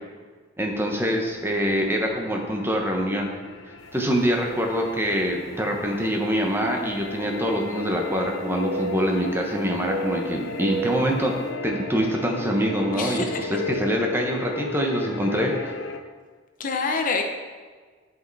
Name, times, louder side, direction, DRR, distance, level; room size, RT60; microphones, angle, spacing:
voice 1, 0.6-3.3 3.9-11.4 11.6-15.7, equal, 10° right, 1 dB, 0.9 m, -25 dB
sound 1, 0.7-16.0, left 3 dB, 80° left, 0.6 m, -36 dB
sound 2, 4.1-4.2 5.0-5.1 7.0-8.2 8.5-9.4 9.8-11.1, right 3 dB, 70° right, 1.9 m, -33 dB
voice 2, 12.9-13.4 16.6-17.2, left 4 dB, 45° left, 4 dB, 0.7 m, -26 dB
11.0 x 5.4 x 4.1 m, 1.5 s
head